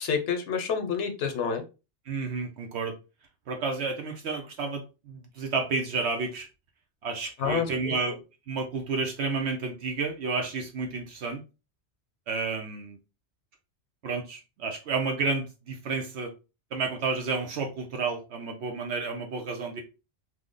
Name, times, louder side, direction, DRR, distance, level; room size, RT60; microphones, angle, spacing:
voice 1, 0.0-1.6 7.4-7.9, left 6 dB, 85° left, 1.0 m, -28 dB
voice 2, 2.1-2.9 3.5-6.5 7.0-8.2 8.5-11.4 12.3-13.0 14.0-16.3 16.7-19.8, right 4 dB, 75° right, 0.9 m, -31 dB
3.1 x 2.1 x 3.6 m
omnidirectional pair, 1.2 m